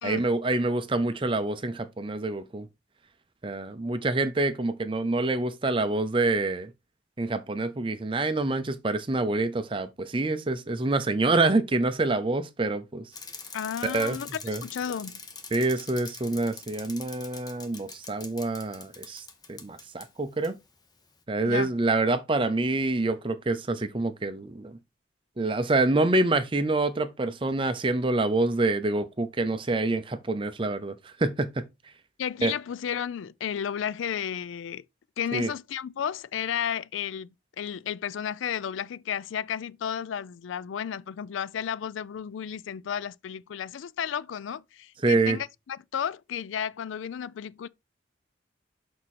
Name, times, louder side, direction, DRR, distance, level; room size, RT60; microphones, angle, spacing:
voice 1, 0.0-2.7 3.4-6.7 7.2-13.1 13.8-14.2 14.5-14.6 15.5-19.2 19.5-20.6 21.3-24.8 25.4-31.7 32.4-32.5 35.3-35.5 45.0-45.4, right 2 dB, 25° right, 0.5 m, -26 dB
Bicycle, 13.1-20.1 20.4-20.5, left 4 dB, 20° left, 0.9 m, -44 dB
voice 2, 13.5-15.2 21.4-21.7 32.2-34.8 35.2-47.7, left 8 dB, 90° left, 0.4 m, -33 dB
6.6 x 4.2 x 4.2 m
head